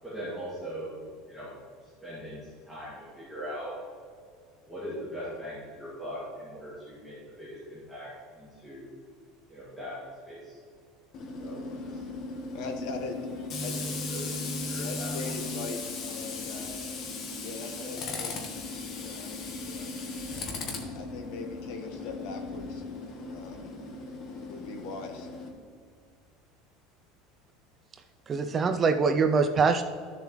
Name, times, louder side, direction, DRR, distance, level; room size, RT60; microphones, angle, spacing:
voice 1, 0.0-1.0 1.3-1.5 2.0-2.4 2.7-3.8 4.7-8.9 9.5-10.0 10.3-10.6 11.4-12.0 13.7-14.3 14.6-15.2, equal, ahead, -11 dB, 2.0 m, -40 dB
Tools, 11.1-25.5, left 3 dB, 35° left, 1.1 m, -37 dB
voice 2, 12.5-13.2 13.6-13.8 14.7-16.8 17.4-18.3 18.9-20.0 20.8-22.8 23.3-23.7 24.5-25.3, left 4 dB, 55° left, 4 dB, 1.3 m, -41 dB
voice 3, 28.3-29.8, right 5 dB, 20° right, 8 dB, 0.3 m, -23 dB
12.5 x 7.0 x 3.0 m, 2.1 s
cardioid pair, 175°, 0 cm